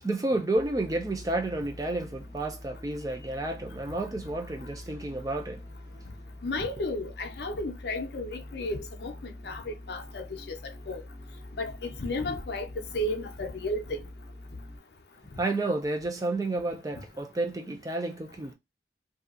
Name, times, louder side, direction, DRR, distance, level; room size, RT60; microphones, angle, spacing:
voice 1, 0.0-5.6 15.4-18.5, right 2 dB, 20° right, 0.4 m, -31 dB
sound 1, 0.5-14.8, left 1 dB, 75° right, 0.9 m, -45 dB
voice 2, 6.4-10.6 10.9-11.0 11.6-12.7 12.9-14.0, left 1 dB, 65° left, 0.6 m, -33 dB
2.7 x 2.3 x 2.3 m
head